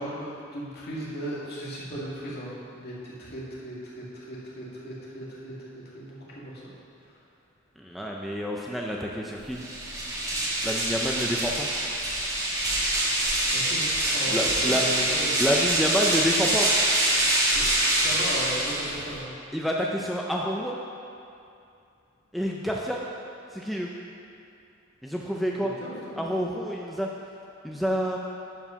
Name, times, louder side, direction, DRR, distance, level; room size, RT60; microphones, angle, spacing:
voice 1, 0.0-6.7 7.0-7.2 13.5-14.4 14.6-15.3 15.9-16.0 17.5-17.6 17.9-19.3 25.4-26.2, right 1 dB, 55° left, -6 dB, 2.1 m, -37 dB
voice 2, 7.8-9.7 10.6-11.7 14.3-14.8 15.4-16.7 19.5-20.8 22.3-23.0 23.5-23.9 25.0-25.7 26.2-27.1 27.6-28.2, equal, ahead, -2 dB, 0.5 m, -28 dB
sound 1, 9.5-19.2, right 1 dB, 15° right, 1.5 m, -25 dB
11.0 x 4.7 x 5.7 m, 2.6 s
head